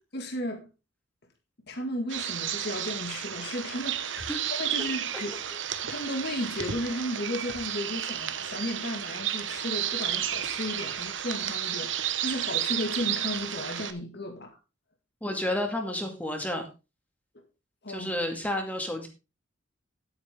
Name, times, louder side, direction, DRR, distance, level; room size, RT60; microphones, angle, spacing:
voice 1, 0.1-0.7 1.7-5.3 5.8-14.6 17.8-18.1, left 1 dB, 55° left, 2.0 m, -34 dB
sound 1, 2.1-13.9, right 10 dB, 70° right, 1.0 m, -32 dB
voice 2, 15.2-16.7 17.9-19.1, left 1 dB, 10° left, 2.2 m, -31 dB
10.5 x 9.5 x 3.7 m
head